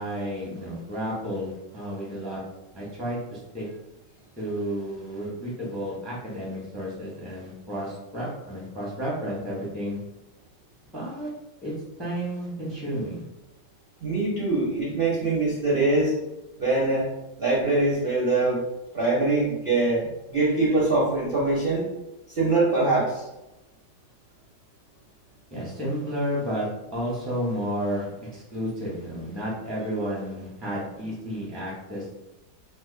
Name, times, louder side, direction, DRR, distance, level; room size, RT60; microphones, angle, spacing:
voice 1, 0.0-2.4 2.7-3.7 4.4-10.0 10.9-11.3 11.6-11.7 12.0-13.2 25.5-32.1, equal, ahead, -5 dB, 0.5 m, -32 dB
voice 2, 14.0-16.1 16.6-17.1 17.4-18.6 18.9-21.9 22.3-23.3, right 2 dB, 55° right, -6 dB, 0.6 m, -23 dB
2.8 x 2.4 x 3.8 m, 0.95 s
omnidirectional pair, 2.0 m